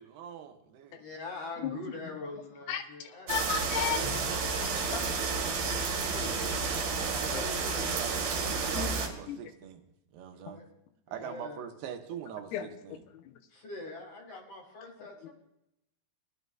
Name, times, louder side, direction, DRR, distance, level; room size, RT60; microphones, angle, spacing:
voice 1, 0.0-1.0 7.1-9.8 10.1-10.6 11.1-12.5 12.9-13.0, right 9 dB, 90° right, 6 dB, 3.0 m, -43 dB
voice 2, 0.9-3.3 3.7-6.6 7.0-8.0 10.3-10.6 11.1-11.7 13.5-15.3, left 3 dB, 50° left, 1 dB, 2.1 m, -44 dB
voice 3, 2.7-4.0 4.7-5.1 5.6-5.8 6.1-6.5 7.0-7.1 7.3-7.4 8.7-8.9 9.3-9.5 10.5-10.6 12.5-13.4, left 9 dB, 80° left, 7 dB, 2.7 m, -36 dB
sound 1, 3.3-9.1, right 4 dB, 65° right, 3.4 m, -31 dB
20.0 x 11.0 x 2.3 m, 0.84 s
omnidirectional pair, 4.6 m